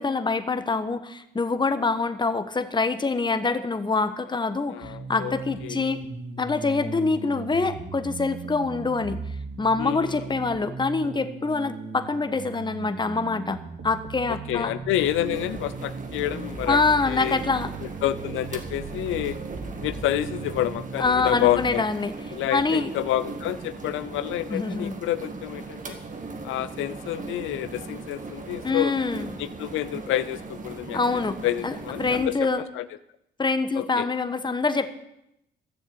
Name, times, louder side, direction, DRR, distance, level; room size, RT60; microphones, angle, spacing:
voice 1, 0.0-6.0 6.4-9.2 9.6-14.7 16.7-17.7 21.0-22.1 22.5-22.9 24.5-25.0 28.6-29.3 30.9-31.4 31.6-32.6 33.4-34.9, left 4 dB, 20° left, 10 dB, 1.2 m, -25 dB
voice 2, 4.7-5.4 5.6-5.8 9.8-10.2 14.3-16.8 17.1-17.4 17.8-19.4 19.8-21.9 22.3-26.0 26.4-28.9 29.4-31.0 31.4-32.8 33.7-34.1, left 13 dB, 85° left, 14 dB, 0.6 m, -28 dB
sound 1, 4.8-21.7, right 4 dB, 60° right, 2.2 m, -38 dB
sound 2, 15.0-32.3, right 3 dB, 40° right, 2.1 m, -38 dB
14.0 x 7.2 x 8.8 m, 0.82 s
cardioid pair, 90°, 20 cm